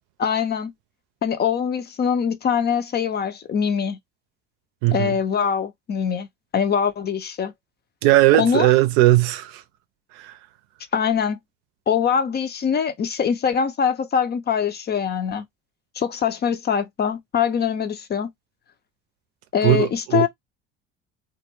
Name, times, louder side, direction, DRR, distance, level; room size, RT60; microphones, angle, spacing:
voice 1, 0.2-0.7 1.2-4.0 4.9-6.3 6.5-7.5 8.3-8.7 10.9-11.4 11.9-15.4 16.0-18.3 19.5-20.3, left 7 dB, 30° left, 0.5 m, -23 dB
voice 2, 4.8-5.2 8.0-9.6 10.1-10.4 19.6-20.3, right 16 dB, 70° right, 0.6 m, -18 dB
2.2 x 2.0 x 3.0 m
hypercardioid pair, 65°, 31 cm